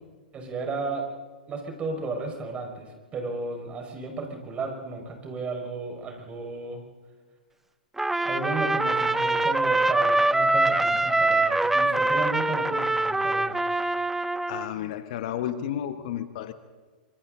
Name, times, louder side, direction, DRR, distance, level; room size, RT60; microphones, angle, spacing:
voice 1, 0.3-1.0 1.5-6.8 8.3-13.6, right 3 dB, 25° right, 2 dB, 5.2 m, -34 dB
Trumpet, 8.0-14.7, right 2 dB, 5° right, 0.6 m, -24 dB
voice 2, 14.5-16.5, left 10 dB, 55° left, 11 dB, 1.3 m, -32 dB
26.5 x 25.5 x 3.9 m, 1.4 s
figure-of-eight pair, 105°, 5 cm